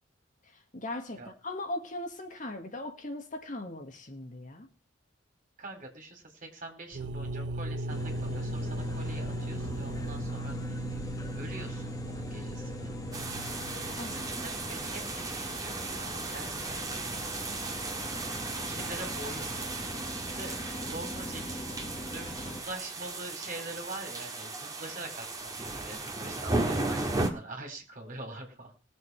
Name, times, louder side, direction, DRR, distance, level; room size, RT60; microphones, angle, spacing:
voice 1, 0.7-4.7 14.0-14.2, left 2 dB, 40° left, 5 dB, 1.6 m, -39 dB
voice 2, 5.6-10.8 11.4-12.9 14.1-17.3 18.3-19.8 20.3-20.6 20.9-21.7 22.1-28.7, right 2 dB, 45° right, 3 dB, 3.6 m, -44 dB
sound 1, 6.9-14.7, right 1 dB, 75° right, 0.8 m, -37 dB
sound 2, 7.9-22.6, left 1 dB, 20° left, 1.5 m, -41 dB
sound 3, 13.1-27.3, right 2 dB, 20° right, 1.8 m, -35 dB
20.0 x 7.0 x 4.6 m, 0.34 s
head